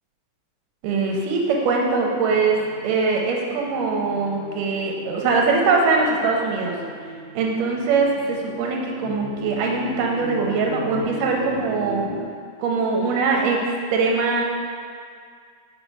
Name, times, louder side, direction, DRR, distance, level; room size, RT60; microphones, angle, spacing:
voice 1, 0.8-2.6 2.8-6.8 7.3-12.0 12.6-14.4, right 4 dB, 75° right, 0 dB, 2.4 m, -22 dB
sound 1, 2.3-12.2, left 1 dB, 60° left, 2.0 m, -37 dB
5.2 x 4.9 x 5.4 m, 2.1 s
omnidirectional pair, 3.9 m